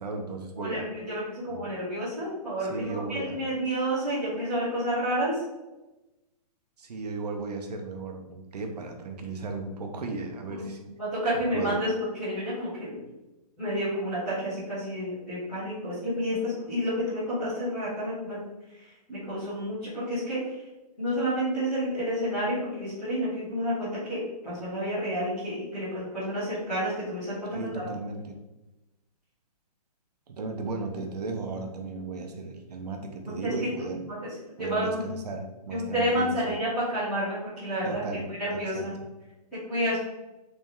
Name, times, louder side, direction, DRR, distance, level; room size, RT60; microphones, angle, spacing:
voice 1, 0.0-0.9 1.5-1.7 2.7-3.4 6.8-10.8 11.5-11.8 27.5-28.4 30.3-34.0 34.6-36.6 37.8-38.9, right 3 dB, 75° right, 4 dB, 0.8 m, -35 dB
voice 2, 0.5-5.4 10.5-11.9 12.2-13.0 13.6-18.4 18.8-20.4 21.0-27.9 33.3-33.5 34.1-34.2 34.6-35.0 35.7-38.9 39.7-40.0, equal, ahead, -16 dB, 0.3 m, -30 dB
3.4 x 2.8 x 3.6 m, 1.0 s
hypercardioid pair, 175°, 21 cm